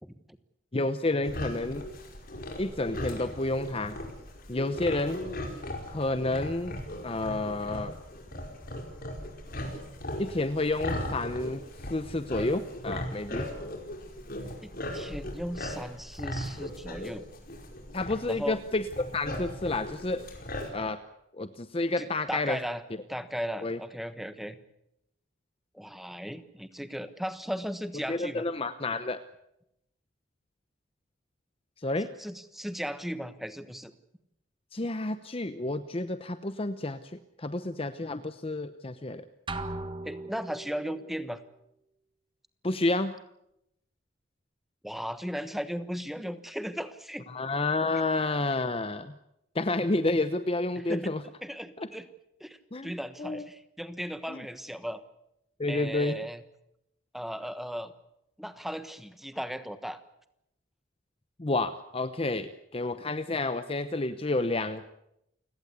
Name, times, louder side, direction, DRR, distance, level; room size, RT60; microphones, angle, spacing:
voice 1, 0.7-1.9 2.6-4.0 4.5-5.2 5.9-7.9 10.2-11.6 11.9-13.5 17.9-20.2 20.7-21.0 21.3-22.6 23.6-23.8 28.1-29.2 31.8-32.1 34.7-39.2 42.6-43.1 47.3-49.1 49.5-51.2 51.8-51.9 52.7-52.9 53.2-53.5 54.3-54.4 55.6-56.2 61.4-64.9, left 2 dB, 30° left, 11 dB, 0.8 m, -30 dB
sound 1, 1.2-20.7, left 1 dB, 45° left, 4.9 m, -38 dB
voice 2, 14.6-17.2 18.3-18.6 22.0-22.8 23.1-24.6 25.7-28.4 32.2-33.9 40.0-41.4 44.8-47.3 50.9-51.1 51.4-52.1 52.4-55.0 55.7-56.4 57.1-57.9 58.4-60.0, equal, ahead, 11 dB, 1.2 m, -36 dB
sound 2, 39.5-40.9, right 2 dB, 25° right, 1.5 m, -37 dB
29.0 x 17.0 x 8.2 m, 0.83 s
head